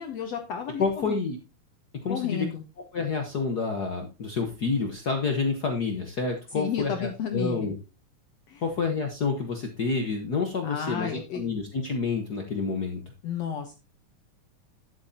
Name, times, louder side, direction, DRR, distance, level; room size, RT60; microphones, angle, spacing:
voice 1, 0.0-1.2 2.1-2.6 6.6-7.7 8.5-8.6 10.6-11.4 13.2-13.7, left 7 dB, 65° left, 5 dB, 1.8 m, -32 dB
voice 2, 0.8-1.4 2.0-2.5 2.9-7.7 8.6-13.0, left 4 dB, 85° left, 3 dB, 0.8 m, -28 dB
11.0 x 8.2 x 2.8 m, 0.29 s
omnidirectional pair, 3.7 m